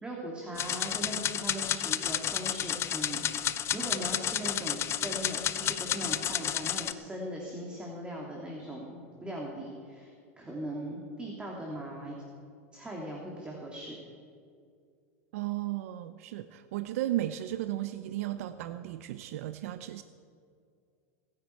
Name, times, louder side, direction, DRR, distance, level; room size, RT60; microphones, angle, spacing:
voice 1, 0.0-12.2 12.7-14.0, right 1 dB, 15° right, -2 dB, 2.7 m, -39 dB
sound 1, 0.6-6.9, left 10 dB, 35° left, 0.6 m, -31 dB
voice 2, 15.3-20.0, right 14 dB, 70° right, 11 dB, 0.6 m, -34 dB
23.5 x 9.8 x 4.6 m, 2.3 s
hypercardioid pair, 105°, 8 cm